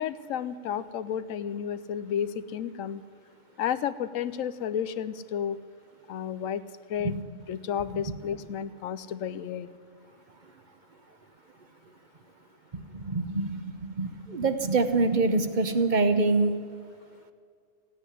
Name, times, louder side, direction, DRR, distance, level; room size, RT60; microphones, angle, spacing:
voice 1, 0.0-3.0 3.6-5.6 6.1-6.6 6.9-7.2 7.5-9.7, left 8 dB, 85° left, 14 dB, 1.0 m, -32 dB
voice 2, 12.9-13.6 14.0-16.5, right 3 dB, 40° right, 9 dB, 1.0 m, -25 dB
15.5 x 9.3 x 9.8 m, 2.2 s
omnidirectional pair, 1.3 m